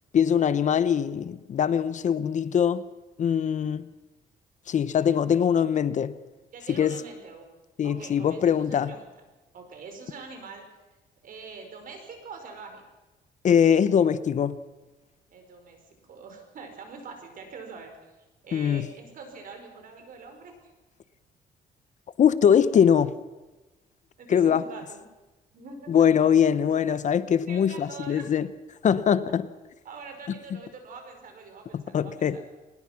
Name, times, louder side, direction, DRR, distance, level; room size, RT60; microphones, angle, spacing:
voice 1, 0.1-2.8 3.2-3.8 4.7-6.1 6.8-7.0 7.8-8.9 13.4-14.6 18.5-18.9 22.2-23.1 24.3-24.6 25.9-28.5 28.8-29.5 31.7-32.4, left 8 dB, 50° left, 0.8 m, -22 dB
voice 2, 6.5-7.5 7.8-9.1 9.5-10.6 11.2-12.8 15.3-15.8 16.1-17.9 18.4-20.5 24.2-25.0 25.5-25.9 27.5-28.3 29.8-32.5, right 4 dB, 60° right, 5.0 m, -44 dB
22.0 x 20.0 x 5.9 m
cardioid pair, 115°, 16 cm